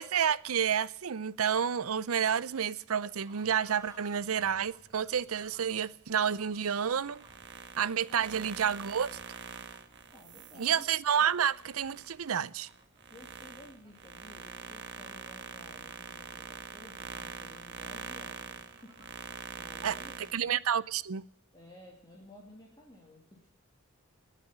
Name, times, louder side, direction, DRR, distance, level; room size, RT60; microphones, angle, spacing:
voice 1, 0.0-7.2 7.8-9.1 10.6-12.7 19.8-20.0 20.3-21.2, right 8 dB, 80° right, 0.6 m, -30 dB
Fowl / Bird, 2.9-21.0, right 2 dB, 20° right, 3.1 m, -61 dB
sound 1, 7.0-12.1 12.6-20.4, right 5 dB, 55° right, 1.4 m, -44 dB
voice 2, 8.1-8.4 10.1-10.9 13.1-20.5 21.5-23.5, left 1 dB, 20° left, 2.5 m, -54 dB
19.0 x 7.7 x 9.9 m
head